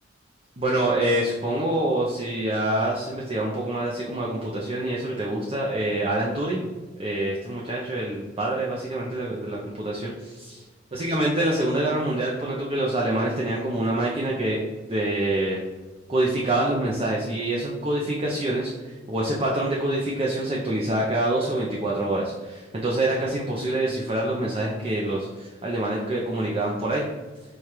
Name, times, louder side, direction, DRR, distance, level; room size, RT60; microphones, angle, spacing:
voice 1, 0.6-6.7 7.0-10.6 10.9-14.6 14.9-15.6 16.1-27.0, right 1 dB, 30° right, -3 dB, 0.5 m, -26 dB
4.8 x 2.3 x 4.3 m, 1.3 s
head